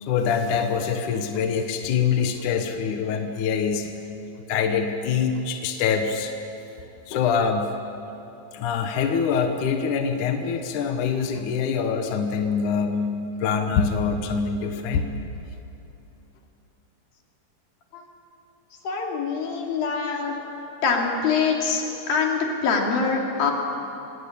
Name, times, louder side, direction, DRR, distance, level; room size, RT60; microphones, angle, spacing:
voice 1, 0.0-4.1 4.4-6.3 7.1-7.7 8.5-15.1, left 6 dB, 65° left, 5 dB, 2.6 m, -24 dB
voice 2, 18.8-20.3 20.8-23.5, left 5 dB, 85° left, 0 dB, 4.6 m, -24 dB
26.5 x 20.0 x 8.6 m, 2.8 s
omnidirectional pair, 4.0 m